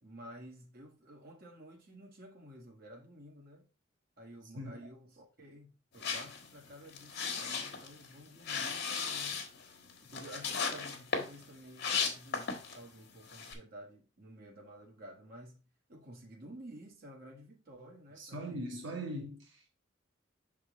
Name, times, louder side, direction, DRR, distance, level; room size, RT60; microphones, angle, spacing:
voice 1, 0.0-3.7 4.2-9.4 10.0-15.6 15.9-18.7, equal, 50° right, 1.4 m, -52 dB
voice 2, 4.5-4.9 18.2-19.8, right 1 dB, 65° right, 1.3 m, -41 dB
sound 1, 6.0-12.9 13.2-13.5, left 5 dB, 55° left, 1.3 m, -37 dB
5.7 x 3.7 x 4.9 m
head